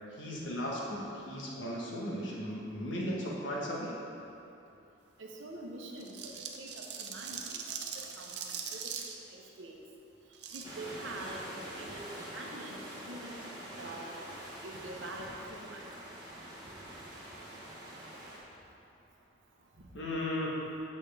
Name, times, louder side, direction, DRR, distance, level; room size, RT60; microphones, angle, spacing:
voice 1, 0.1-3.9 19.9-20.7, left 1 dB, 80° left, -4 dB, 1.3 m, -36 dB
voice 2, 5.2-7.6 7.9-9.8 10.5-11.4 11.8-13.4 13.8-14.1 14.6-15.8 19.8-19.9, right 1 dB, 85° right, 0 dB, 0.9 m, -45 dB
sound 1, 6.0-9.1 10.3-10.6, right 7 dB, 60° right, 0.5 m, -41 dB
sound 2, 10.6-18.4, right 1 dB, 20° right, 1.2 m, -45 dB
8.1 x 6.1 x 3.4 m, 2.8 s
head